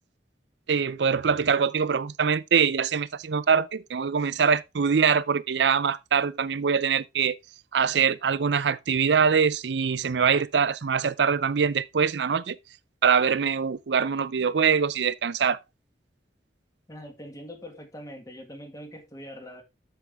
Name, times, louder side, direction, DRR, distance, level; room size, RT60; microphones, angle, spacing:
voice 1, 0.7-7.4 7.7-12.6 13.0-15.6, right 6 dB, 80° right, 0.5 m, -23 dB
voice 2, 16.9-19.6, equal, 20° left, 1.7 m, -42 dB
7.6 x 6.9 x 3.5 m
head